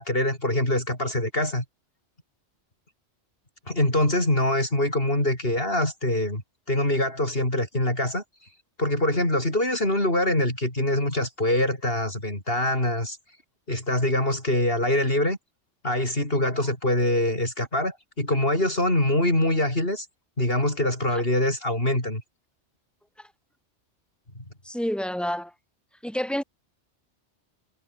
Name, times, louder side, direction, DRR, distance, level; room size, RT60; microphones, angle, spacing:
voice 1, 0.0-1.6 3.7-6.4 6.7-8.2 8.8-13.2 13.7-15.4 15.8-20.1 20.4-22.2, left 1 dB, 50° left, 7.2 m, -24 dB
voice 2, 24.6-25.5 26.0-26.4, equal, ahead, 7.9 m, -29 dB
omnidirectional pair, 1.2 m